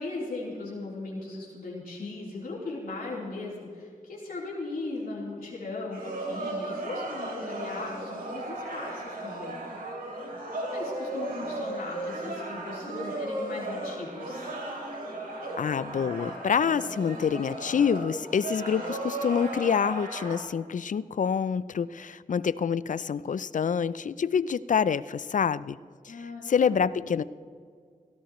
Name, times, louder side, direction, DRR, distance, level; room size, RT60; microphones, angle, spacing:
voice 1, 0.0-10.1 10.6-14.5 26.1-26.9, left 2 dB, 85° left, -6 dB, 3.6 m, -38 dB
sound 1, 5.9-20.4, right 1 dB, 80° right, 3.1 m, -35 dB
voice 2, 15.6-25.8 26.0-26.2 26.5-27.2, left 7 dB, 60° left, 18 dB, 0.4 m, -27 dB
17.5 x 17.0 x 3.1 m, 2.1 s
cardioid pair, 60°, 15 cm